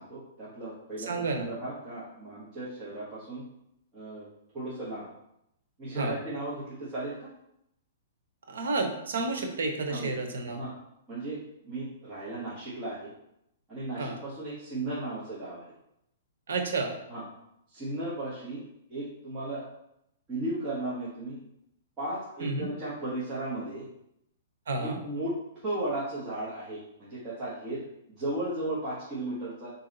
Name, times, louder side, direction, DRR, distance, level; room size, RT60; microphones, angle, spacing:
voice 1, 0.0-3.4 3.9-4.3 4.5-5.1 5.8-7.3 9.9-10.8 11.1-13.1 13.7-15.7 17.1-17.2 17.7-18.6 18.9-19.6 20.3-21.4 22.0-23.9 24.8-25.4 25.6-27.8 28.2-29.7, right 2 dB, 20° right, -9 dB, 1.0 m, -35 dB
voice 2, 1.1-1.5 5.9-6.2 8.5-10.6 14.0-14.2 16.5-16.9 22.4-22.7 24.7-25.0, right 3 dB, 90° right, 3 dB, 0.9 m, -30 dB
4.6 x 2.8 x 3.8 m, 0.80 s
hypercardioid pair, 165°, 0 cm